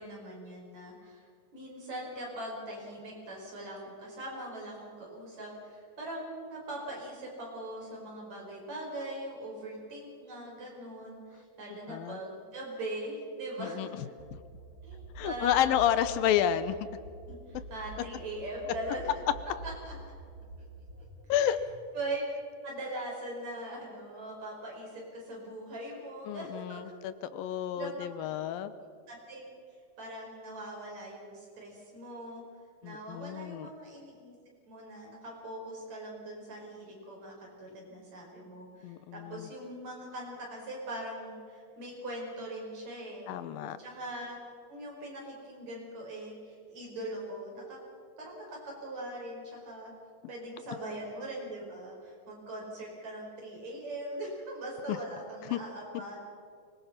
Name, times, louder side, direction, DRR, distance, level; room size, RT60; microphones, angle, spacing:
voice 1, 0.0-14.0 14.8-16.0 17.3-19.1 19.6-19.9 21.9-22.2 22.6-26.9 27.7-28.3 29.1-29.5 30.0-32.4 32.8-34.3 34.7-43.3 43.8-44.4 44.7-47.8 48.2-49.9 50.3-56.2, right 1 dB, 50° right, -2 dB, 6.4 m, -41 dB
voice 2, 11.9-12.2 13.6-13.9 14.3-14.4 15.2-16.8 21.3-21.6 26.3-28.7 32.8-33.7 38.8-39.5 43.3-43.8 54.9-55.0 55.4-55.6, left 11 dB, 85° left, 13 dB, 2.6 m, -30 dB
sound 1, 14.2-21.8, right 2 dB, 25° right, 3.7 m, -47 dB
24.5 x 20.5 x 6.0 m, 2.2 s
omnidirectional pair, 4.1 m